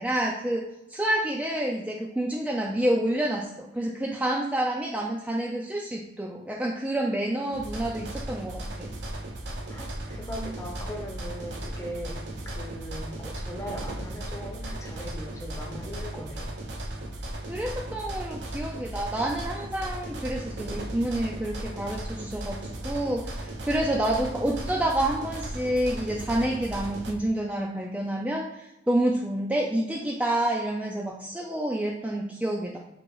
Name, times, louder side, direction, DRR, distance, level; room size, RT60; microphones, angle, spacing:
voice 1, 0.0-8.6 17.5-22.6 22.8-32.8, right 1 dB, 5° right, -2 dB, 0.4 m, -28 dB
sound 1, 7.5-27.1, right 1 dB, 80° right, 0.8 m, -36 dB
voice 2, 9.7-16.5, equal, 15° left, 1 dB, 0.7 m, -39 dB
3.8 x 2.8 x 4.7 m, 0.91 s
head